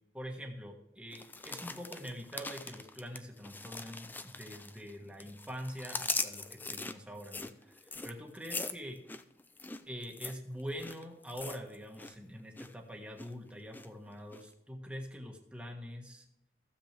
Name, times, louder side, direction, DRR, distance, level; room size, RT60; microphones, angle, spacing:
voice 1, 0.1-9.0 9.9-16.2, equal, 5° right, 1 dB, 1.5 m, -44 dB
sound 1, 1.1-4.9 5.2-12.1 12.4-12.7 13.2-13.9 14.3-14.4, left 3 dB, 10° left, 0.4 m, -41 dB
15.0 x 7.5 x 3.4 m, 0.84 s
head